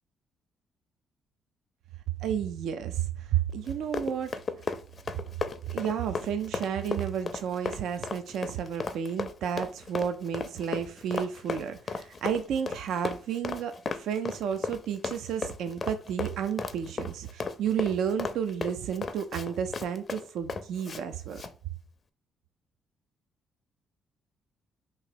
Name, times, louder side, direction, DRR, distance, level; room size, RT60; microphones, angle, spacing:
voice 1, 2.2-4.3 5.7-21.4, right 8 dB, 80° right, 0.3 m, -32 dB
Run, 3.6-21.0 21.3-21.5, left 4 dB, 40° left, 0.4 m, -35 dB
3.0 x 2.9 x 4.4 m
cardioid pair, 90°, 0 cm